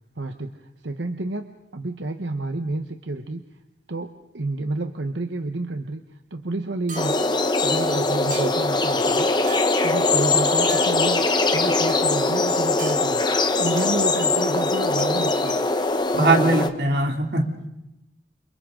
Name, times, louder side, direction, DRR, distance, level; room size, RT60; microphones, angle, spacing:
voice 1, 0.2-3.4 3.9-9.3 9.8-13.3 13.6-15.7, right 2 dB, 90° right, 6 dB, 1.2 m, -30 dB
sound 1, 6.9-7.2 8.3-8.7 9.5-9.8 10.7-10.9 11.9-12.0 12.8-13.0 13.8-13.9 15.0-15.9, right 5 dB, 45° right, 2.8 m, -39 dB
sound 2, 7.0-16.7, left 3 dB, 25° left, 1.2 m, -21 dB
voice 2, 16.1-17.7, right 2 dB, 65° right, 3 dB, 3.0 m, -21 dB
29.5 x 26.5 x 3.9 m, 0.94 s
head